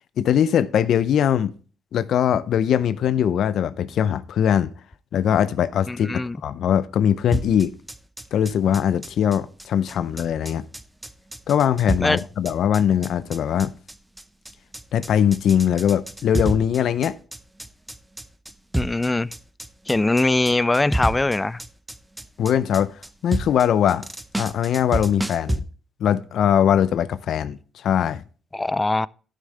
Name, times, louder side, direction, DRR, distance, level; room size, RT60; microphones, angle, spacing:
voice 1, 0.2-1.5 1.9-4.7 5.1-7.7 8.3-10.6 11.5-13.7 14.9-17.2 22.4-22.9 23.2-24.1 24.4-25.6 26.0-28.2, left 9 dB, 70° left, 0.5 m, -21 dB
voice 2, 5.9-6.4 12.0-12.2 18.7-19.3 19.9-21.6 28.5-29.1, left 2 dB, 15° left, 0.3 m, -21 dB
sound 1, 7.3-25.6, right 1 dB, 10° right, 0.7 m, -30 dB
12.5 x 6.5 x 3.3 m
cardioid pair, 90°, 0 cm